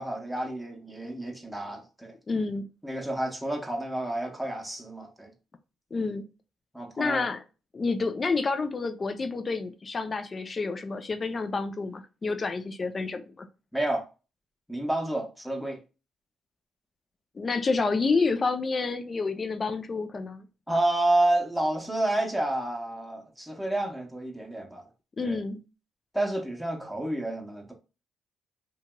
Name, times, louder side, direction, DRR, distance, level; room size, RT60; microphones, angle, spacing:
voice 1, 0.0-2.1 2.8-5.3 6.7-7.3 13.7-14.0 14.7-15.8 20.7-24.8 25.2-25.4 26.1-27.7, right 1 dB, ahead, 0.8 m, -29 dB
voice 2, 2.3-2.7 5.9-6.3 7.0-7.4 7.7-13.5 17.4-20.5 25.2-25.6, left 4 dB, 35° left, 0.4 m, -29 dB
2.8 x 2.7 x 2.2 m
cardioid pair, 90°, 0 cm